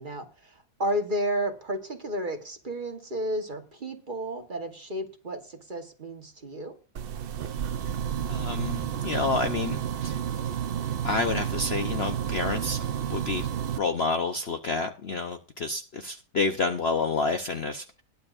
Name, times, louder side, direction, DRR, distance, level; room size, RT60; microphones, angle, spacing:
voice 1, 0.0-6.7, equal, 30° right, 1.3 m, -32 dB
sound 1, 6.9-13.8, right 9 dB, 65° right, 0.5 m, -31 dB
voice 2, 8.3-10.2 11.0-13.5 13.8-18.0, left 4 dB, 50° left, 0.8 m, -29 dB
21.0 x 7.0 x 2.5 m
omnidirectional pair, 1.7 m